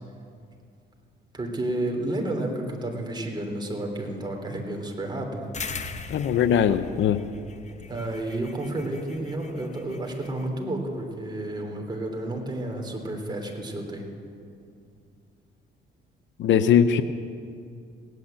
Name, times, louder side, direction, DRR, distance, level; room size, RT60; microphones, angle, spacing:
voice 1, 1.3-5.5 7.9-14.1, right 1 dB, 20° right, 1 dB, 3.2 m, -31 dB
sound 1, 5.5-10.4, left 4 dB, 35° left, 1.0 m, -40 dB
voice 2, 6.1-7.3 16.4-17.0, left 8 dB, 70° left, 12 dB, 0.7 m, -20 dB
17.5 x 9.3 x 8.8 m, 2.3 s
cardioid pair, 90°, 20 cm